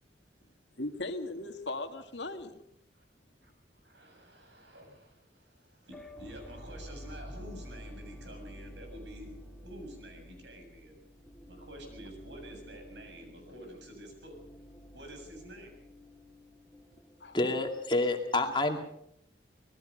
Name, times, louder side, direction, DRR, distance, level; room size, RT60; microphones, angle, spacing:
voice 1, 0.8-2.6 17.2-17.4, left 2 dB, 80° left, 2.0 m, -38 dB
voice 2, 3.8-11.0 11.4-14.4 14.9-15.8, equal, 80° right, 7.4 m, -49 dB
sound 1, 5.9-17.8, equal, ahead, 2.1 m, -50 dB
voice 3, 17.3-18.8, left 2 dB, 25° left, 2.4 m, -28 dB
26.5 x 19.0 x 5.3 m
head